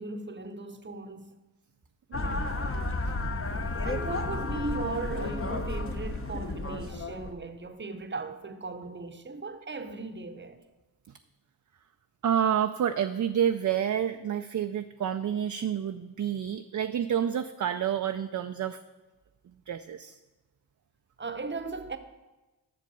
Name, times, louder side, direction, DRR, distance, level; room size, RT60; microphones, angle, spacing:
voice 1, 0.0-1.4 3.8-10.6 21.2-22.0, right 3 dB, 25° right, 0.8 m, -37 dB
sound 1, 2.1-7.3, left 2 dB, 30° left, 0.9 m, -32 dB
voice 2, 12.2-18.8 19.7-20.2, right 9 dB, 45° right, 0.5 m, -29 dB
7.6 x 6.4 x 5.5 m
cardioid pair, 45°, 41 cm